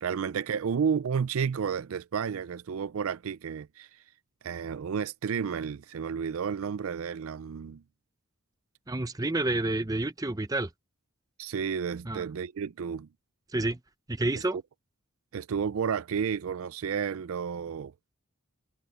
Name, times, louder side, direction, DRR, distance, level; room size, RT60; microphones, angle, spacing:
voice 1, 0.0-3.9 4.4-7.8 11.4-13.1 14.3-14.6 15.3-17.9, right 6 dB, 70° right, 0.4 m, -31 dB
voice 2, 8.9-10.7 12.1-12.3 13.5-13.8 14.1-14.6, right 2 dB, 15° right, 0.6 m, -29 dB
head